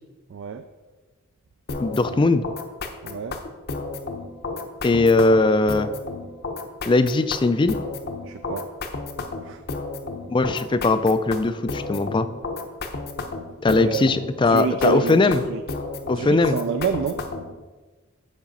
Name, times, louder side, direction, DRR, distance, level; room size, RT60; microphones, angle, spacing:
voice 1, 0.3-0.6 3.0-3.4 8.3-8.7 9.4-9.6 13.7-14.1 14.5-15.6 16.1-17.2, right 5 dB, 60° right, 10 dB, 0.3 m, -28 dB
sound 1, 1.7-17.5, left 3 dB, 50° left, 0.8 m, -32 dB
voice 2, 1.8-2.4 4.8-5.9 6.9-7.8 10.3-12.3 13.6-15.4 16.1-16.6, left 3 dB, 25° left, 12 dB, 0.3 m, -19 dB
7.3 x 5.0 x 5.3 m, 1.3 s
head